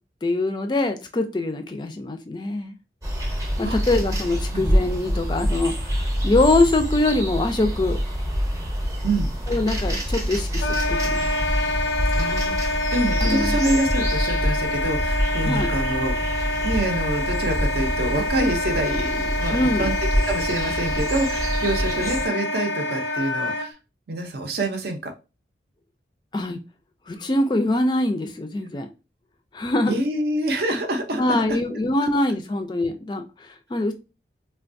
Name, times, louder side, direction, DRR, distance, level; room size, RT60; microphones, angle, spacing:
voice 1, 0.2-2.7 3.6-8.0 9.5-11.3 13.2-13.6 15.4-15.7 19.5-19.9 26.3-26.6 27.1-28.9 29.5-30.0 31.2-33.9, left 2 dB, 25° left, 0.3 m, -23 dB
sound 1, 3.0-22.3, equal, 15° right, 0.7 m, -26 dB
Wind instrument woodwind instrument, 10.6-23.7, left 1 dB, 90° left, 0.5 m, -27 dB
voice 2, 12.2-16.1 16.6-19.9 20.2-23.8 24.1-25.1 29.9-31.6 32.0-32.1, right 1 dB, 65° right, 0.6 m, -26 dB
3.3 x 2.3 x 2.5 m
head